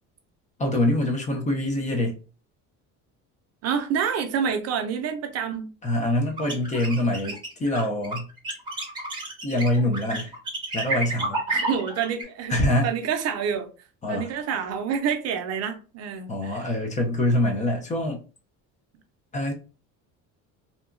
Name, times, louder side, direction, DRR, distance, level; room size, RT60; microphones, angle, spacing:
voice 1, 0.6-2.2 5.8-8.3 9.4-10.3 10.7-11.4 12.5-12.9 14.0-14.3 16.3-18.2 19.3-19.5, left 1 dB, 20° left, 0.4 m, -24 dB
voice 2, 3.6-5.7 11.5-12.6 12.8-13.7 14.1-16.7, right 7 dB, 50° right, 0.5 m, -28 dB
sound 1, 6.4-12.2, right 2 dB, 15° right, 0.8 m, -30 dB
2.7 x 2.2 x 2.4 m
cardioid pair, 150°, 33 cm